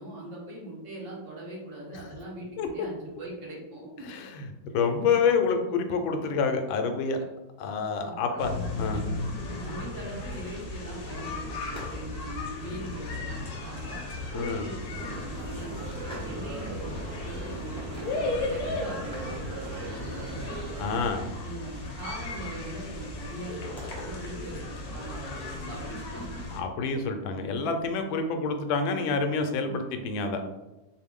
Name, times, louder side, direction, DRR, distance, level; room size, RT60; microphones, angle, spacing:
voice 1, 0.0-4.1 8.0-9.1 9.7-14.0 14.3-20.5 21.4-26.4 26.8-26.9 28.1-28.3 29.6-29.8, right 1 dB, 45° right, -4 dB, 1.4 m, -41 dB
voice 2, 4.0-4.5 4.7-7.2 7.6-8.5 8.8-9.0 14.3-14.6 20.8-21.3 26.5-30.4, left 5 dB, 80° left, 6 dB, 1.3 m, -27 dB
sound 1, 8.4-26.6, left 2 dB, 60° left, 1.1 m, -36 dB
sound 2, 10.3-12.0 12.3-12.7 13.5-14.3 14.8-14.9 15.2-16.7 17.1-18.6 18.9-22.0 22.3-22.9 23.2-24.1, left 1 dB, 5° left, 0.6 m, -49 dB
sound 3, 14.9-21.1, right 3 dB, 70° right, 0.9 m, -39 dB
4.3 x 2.5 x 3.6 m, 1.0 s
omnidirectional pair, 2.2 m